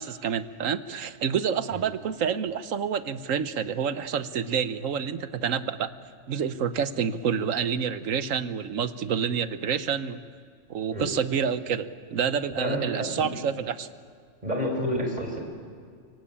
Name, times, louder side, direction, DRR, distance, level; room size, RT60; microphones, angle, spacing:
voice 1, 0.0-5.9 6.3-10.2 10.7-13.9, right 7 dB, 80° right, 12 dB, 1.3 m, -28 dB
voice 2, 12.5-13.3 14.4-15.4, equal, 30° right, 3 dB, 4.7 m, -29 dB
24.5 x 24.5 x 8.7 m, 2.1 s
omnidirectional pair, 1.3 m